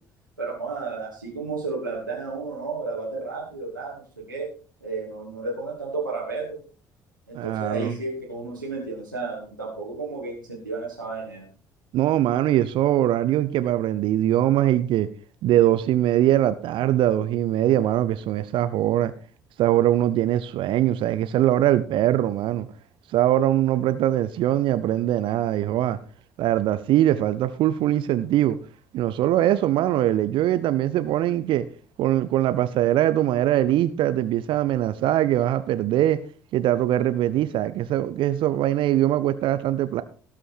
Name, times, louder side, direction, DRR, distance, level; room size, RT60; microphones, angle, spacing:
voice 1, 0.4-4.5 4.8-6.6 7.3-11.5, right 3 dB, 90° right, 2.4 m, -32 dB
voice 2, 7.3-7.9 11.9-15.1 15.4-19.1 19.6-22.7 23.1-26.0 26.4-28.6 28.9-31.6 32.0-36.2 36.5-40.0, right 13 dB, 55° right, 0.7 m, -22 dB
18.0 x 6.3 x 4.5 m
figure-of-eight pair, 50°, 10 cm